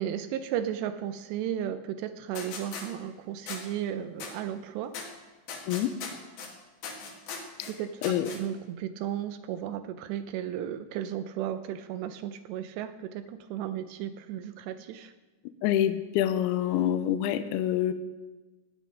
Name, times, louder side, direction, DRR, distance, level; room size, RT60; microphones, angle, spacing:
voice 1, 0.0-5.0 7.8-15.1, right 10 dB, 80° right, 10 dB, 2.6 m, -34 dB
sound 1, 2.3-2.8 3.5-3.6 4.2-4.3 4.9-5.0 5.5-6.5 6.8-7.7 8.0-8.4, left 5 dB, 60° left, 3.4 m, -38 dB
voice 2, 15.6-17.9, left 11 dB, 80° left, 11 dB, 2.3 m, -26 dB
15.5 x 9.7 x 5.1 m, 1.2 s
omnidirectional pair, 5.2 m